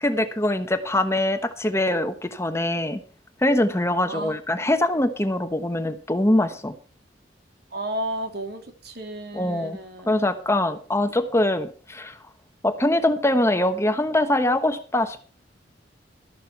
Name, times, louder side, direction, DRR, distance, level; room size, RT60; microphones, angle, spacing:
voice 1, 0.0-3.0 3.4-6.7 9.3-9.8 10.1-12.2 12.6-15.3, left 1 dB, 15° left, 8 dB, 1.1 m, -23 dB
voice 2, 7.7-10.2 13.3-13.4, right 1 dB, 60° right, 5 dB, 2.9 m, -33 dB
13.5 x 11.5 x 4.6 m, 0.39 s
head